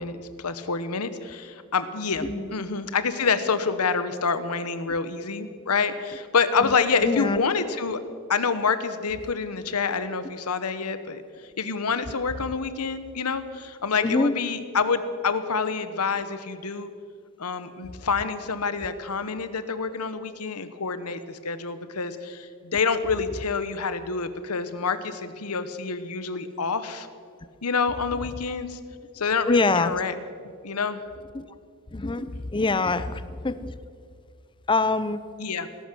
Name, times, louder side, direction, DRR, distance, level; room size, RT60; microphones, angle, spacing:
voice 1, 0.0-8.0 8.3-11.2 11.6-16.9 17.4-27.1 27.6-28.8 29.1-30.2 30.6-31.0 35.4-35.7, left 5 dB, 85° left, 12 dB, 1.0 m, -27 dB
voice 2, 2.2-2.5 6.6-6.7 7.0-7.4 14.0-14.3 29.4-29.9 31.3-31.5 31.9-33.7 34.7-35.2, left 3 dB, 20° left, 14 dB, 0.6 m, -24 dB
18.5 x 11.5 x 6.2 m, 2.3 s
head